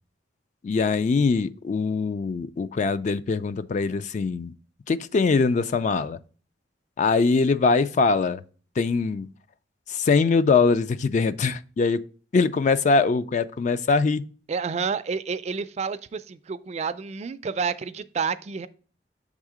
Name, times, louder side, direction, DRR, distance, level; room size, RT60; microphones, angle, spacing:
voice 1, 0.6-4.5 4.9-6.2 7.0-8.4 8.8-9.3 9.9-12.0 12.3-14.2, left 4 dB, 40° left, 0.3 m, -22 dB
voice 2, 14.5-18.7, right 5 dB, 40° right, 0.3 m, -29 dB
6.3 x 3.6 x 4.8 m
head